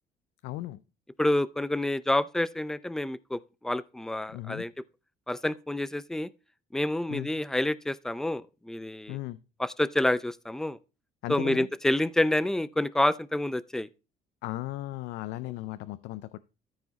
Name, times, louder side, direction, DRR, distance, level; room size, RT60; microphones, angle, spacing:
voice 1, 0.4-0.8 4.3-4.6 7.1-7.3 9.1-9.4 11.2-11.7 14.4-16.4, left 17 dB, 85° left, 0.4 m, -36 dB
voice 2, 1.2-3.4 3.6-4.7 5.3-6.3 6.7-9.2 9.6-10.8 11.3-13.9, left 1 dB, 5° left, 0.4 m, -28 dB
13.5 x 4.9 x 4.0 m
cardioid pair, 110°, 17 cm